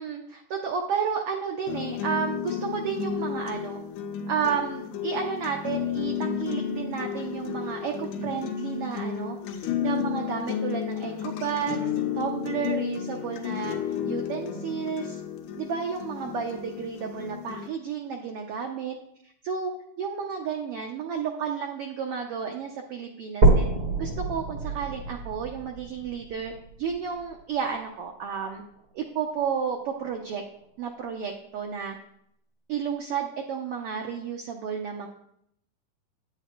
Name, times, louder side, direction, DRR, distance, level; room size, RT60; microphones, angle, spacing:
voice 1, 0.0-3.8 4.3-13.8 14.0-15.2 15.6-18.9 19.4-19.7 20.0-23.7 24.0-26.5 26.8-28.6 28.9-30.4 30.8-32.0 32.7-35.1, right 7 dB, 80° right, 2 dB, 1.3 m, -32 dB
sound 1, 1.7-17.7, left 8 dB, 80° left, 2.2 m, -32 dB
sound 2, 23.4-27.4 28.0-28.1 28.6-28.7 29.1-29.2 30.0-30.1, right 2 dB, 55° right, 0.7 m, -25 dB
9.0 x 8.9 x 3.0 m, 0.73 s
omnidirectional pair, 3.5 m